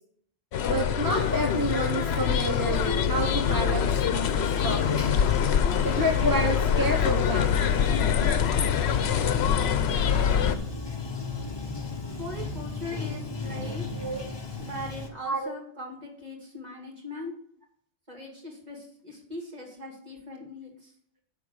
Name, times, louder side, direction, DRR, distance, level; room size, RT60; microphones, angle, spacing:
sound 1, 0.5-10.5, left 8 dB, 70° left, 0.9 m, -24 dB
voice 1, 0.7-5.2 5.8-7.6 14.0-14.2 15.3-15.5, right 1 dB, 20° right, 2 dB, 0.9 m, -29 dB
Bathtub (filling or washing), 1.0-15.1, left 3 dB, 25° left, 0.9 m, -37 dB
voice 2, 12.2-13.9 14.6-17.3 18.1-20.9, left 1 dB, 35° right, -1 dB, 2.5 m, -40 dB
10.0 x 3.8 x 7.3 m, 0.62 s
omnidirectional pair, 1.2 m